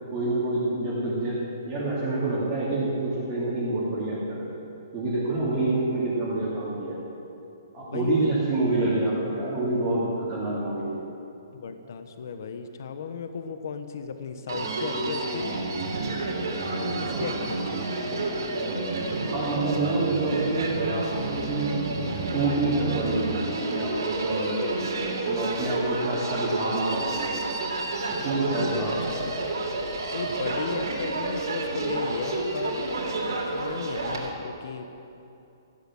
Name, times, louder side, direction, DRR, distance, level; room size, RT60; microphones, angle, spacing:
voice 1, 0.1-4.4 4.9-7.0 7.7-11.0 17.1-17.2 19.3-21.7 22.2-24.6 25.2-27.4 28.2-29.2, right 2 dB, 15° right, -10 dB, 2.8 m, -27 dB
voice 2, 7.8-8.7 11.5-15.7 16.7-18.2 28.5-29.3 30.1-32.9 33.5-34.9, left 5 dB, 50° left, 8 dB, 1.1 m, -35 dB
Human voice, 14.5-34.3, right 2 dB, 80° right, 3.2 m, -30 dB
15.0 x 11.5 x 7.6 m, 2.8 s
hypercardioid pair, 175°, 2 cm